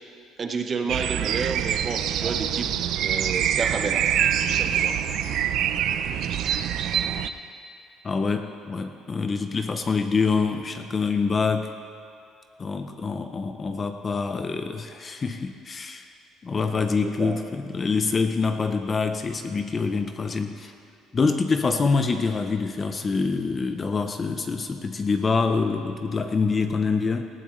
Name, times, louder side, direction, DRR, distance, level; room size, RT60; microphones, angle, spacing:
voice 1, 0.4-2.7 3.0-4.1 4.5-5.0 17.0-17.4, right 4 dB, 25° right, 5 dB, 0.8 m, -30 dB
sound 1, 0.9-7.3, right 9 dB, 50° right, 0.4 m, -25 dB
voice 2, 8.0-11.7 12.6-16.1 16.4-20.7 21.1-27.3, left 4 dB, 20° left, 7 dB, 0.5 m, -25 dB
18.5 x 15.5 x 3.1 m, 2.4 s
cardioid pair, 165°, 0 cm